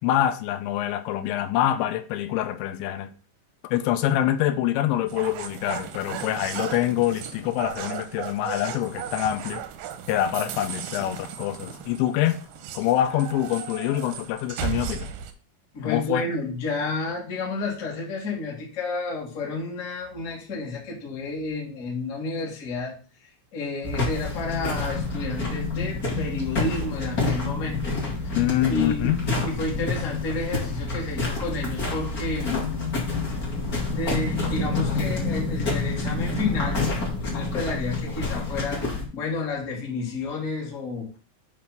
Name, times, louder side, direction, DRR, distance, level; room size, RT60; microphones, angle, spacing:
voice 1, 0.0-3.1 3.6-9.6 10.1-12.4 12.7-15.1 15.9-16.2 28.4-29.2 32.5-32.7, left 12 dB, 85° left, 2.8 m, -25 dB
sound 1, 5.1-15.3, right 9 dB, 80° right, 2.3 m, -36 dB
voice 2, 15.7-22.9 23.2-27.9 28.2-28.4 28.7-32.6 33.9-36.8 37.2-41.2, left 3 dB, 60° left, 0.8 m, -31 dB
sound 2, 23.8-39.0, left 3 dB, 40° left, 1.2 m, -28 dB
8.2 x 3.2 x 5.7 m
omnidirectional pair, 5.3 m